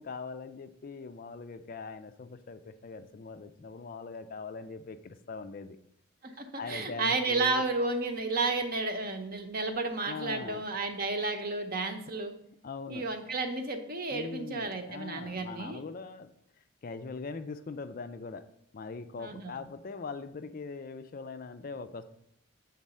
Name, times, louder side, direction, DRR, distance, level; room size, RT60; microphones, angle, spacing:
voice 1, 0.0-5.8 6.6-7.6 10.1-10.6 12.6-13.0 14.1-16.3 16.8-18.4 18.7-22.0, left 4 dB, 40° left, 10 dB, 0.4 m, -41 dB
voice 2, 6.2-12.3 12.9-15.8 19.2-19.6, right 3 dB, 45° right, 6 dB, 0.8 m, -32 dB
7.3 x 4.0 x 5.5 m, 0.73 s
head